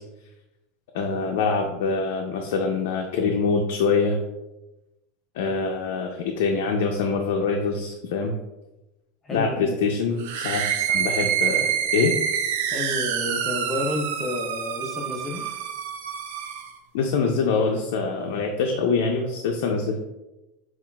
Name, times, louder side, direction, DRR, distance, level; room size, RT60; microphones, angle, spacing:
voice 1, 0.9-4.2 5.4-8.3 9.3-12.1 16.9-20.0, left 4 dB, 65° left, 2 dB, 0.4 m, -24 dB
voice 2, 9.2-9.9 12.7-15.5, left 2 dB, 15° left, 0 dB, 0.5 m, -30 dB
sound 1, 10.2-16.8, right 8 dB, 65° right, 0.3 m, -27 dB
5.6 x 2.3 x 2.2 m, 1.0 s
supercardioid pair, 170°, 0 cm